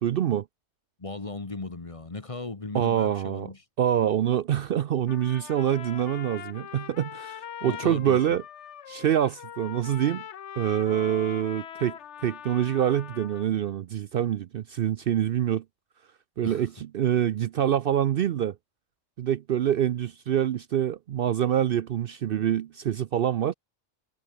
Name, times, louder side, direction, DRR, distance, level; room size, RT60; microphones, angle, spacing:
voice 1, 0.0-0.4 2.7-3.5 3.8-8.4 8.9-10.2 10.6-15.6 16.4-18.5 19.2-23.5, right 10 dB, 60° right, 0.7 m, -26 dB
voice 2, 1.0-3.6 7.6-8.4 16.4-16.7, left 3 dB, 30° left, 1.3 m, -37 dB
Trumpet, 5.1-13.5, left 9 dB, 75° left, 1.2 m, -42 dB
omnidirectional pair, 1.2 m